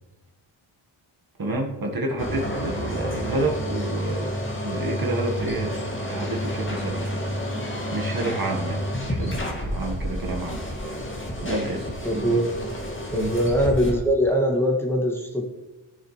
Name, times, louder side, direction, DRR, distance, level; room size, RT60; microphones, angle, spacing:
voice 1, 1.4-4.3 4.6-7.1 7.9-10.6 11.4-12.4 13.1-13.4, right 2 dB, 45° right, 0 dB, 1.7 m, -29 dB
sound 1, 2.2-14.0, equal, 25° left, 2.2 m, -30 dB
voice 2, 12.0-12.7 13.1-15.4, equal, 5° left, -1 dB, 2.1 m, -22 dB
15.0 x 6.7 x 3.3 m, 1.1 s
cardioid pair, 70°, 50 cm